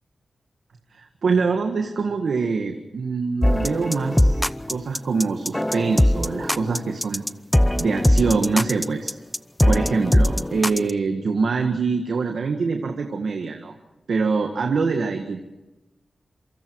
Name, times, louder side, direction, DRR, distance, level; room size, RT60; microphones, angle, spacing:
voice 1, 0.9-4.4 4.7-7.2 7.8-9.2 9.6-13.7 14.1-15.4, right 4 dB, 80° right, 4 dB, 1.7 m, -24 dB
sound 1, 3.4-10.9, left 1 dB, 10° left, 0.7 m, -21 dB
27.0 x 24.0 x 4.8 m, 1.0 s
cardioid pair, 50°, 0 cm